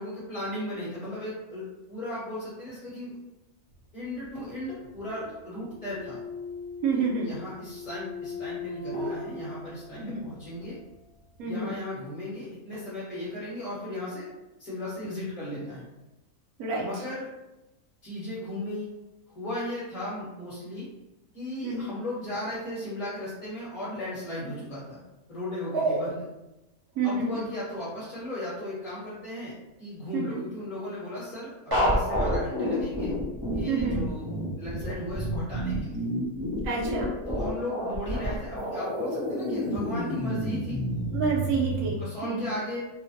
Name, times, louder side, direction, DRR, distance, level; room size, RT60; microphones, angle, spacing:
voice 1, 0.0-3.2 3.9-6.2 6.9-10.8 11.4-14.3 14.6-15.9 16.8-17.3 18.0-18.9 19.3-20.9 21.3-25.0 25.3-26.2 27.0-29.5 29.8-33.1 33.5-36.1 37.3-40.8 42.0-42.8, left 1 dB, 35° left, -10 dB, 1.1 m, -36 dB
sound 1, 4.0-10.5, left 3 dB, 55° left, 1.4 m, -39 dB
voice 2, 6.8-7.3 10.0-10.2 11.4-11.7 16.6-16.9 21.6-21.9 25.7-26.0 27.0-27.4 30.1-30.4 33.7-34.0 36.6-37.1 41.1-42.5, right 4 dB, 75° right, -2 dB, 1.0 m, -28 dB
sound 2, 31.7-41.9, equal, 25° right, 0.5 m, -29 dB
3.0 x 2.1 x 2.7 m, 0.97 s
omnidirectional pair, 1.6 m